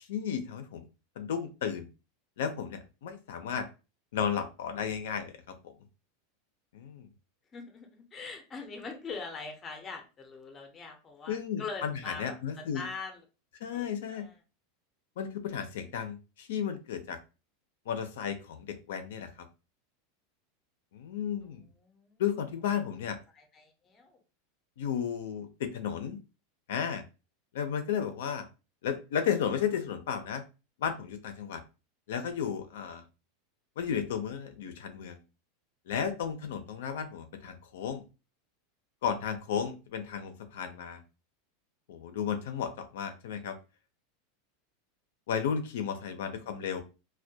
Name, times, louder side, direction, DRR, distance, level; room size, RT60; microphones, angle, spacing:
voice 1, 0.1-0.9 1.2-1.9 2.4-3.6 4.1-5.3 5.6-5.7 6.7-7.1 11.3-12.8 13.6-14.3 15.2-17.2 17.9-19.3 20.9-21.6 22.2-23.2 24.8-26.2 26.7-27.0 27.5-28.4 28.8-30.4 30.8-31.6 32.1-33.0 33.8-35.2 35.9-38.0 39.0-41.0 41.9-43.5 45.3-46.8, left 8 dB, 80° left, 8 dB, 0.4 m, -33 dB
voice 2, 7.5-13.2 13.7-14.4 21.4-22.2 23.3-24.2 46.4-46.5, left 4 dB, 15° left, 4 dB, 0.5 m, -43 dB
2.2 x 2.1 x 2.6 m, 0.30 s
supercardioid pair, 165°, 0 cm